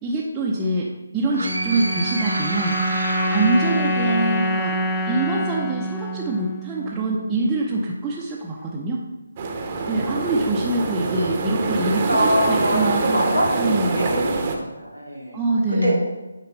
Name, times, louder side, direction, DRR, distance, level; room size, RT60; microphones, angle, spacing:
voice 1, 0.0-0.9 1.1-2.8 3.3-4.7 5.1-9.0 9.9-13.2 13.6-14.1 15.3-16.0, right 2 dB, 10° right, -7 dB, 0.8 m, -24 dB
sound 1, 1.3-7.7, equal, 15° left, 0.4 m, -26 dB
sound 2, 1.3-5.0, right 2 dB, 70° right, 0.9 m, -29 dB
sound 3, 9.4-14.6, right 3 dB, 30° right, 1.0 m, -25 dB
voice 2, 11.8-13.5 13.9-14.4 14.7-15.9, equal, 90° left, -3 dB, 2.7 m, -24 dB
9.4 x 4.1 x 5.4 m, 1.1 s
figure-of-eight pair, 150°, 0 cm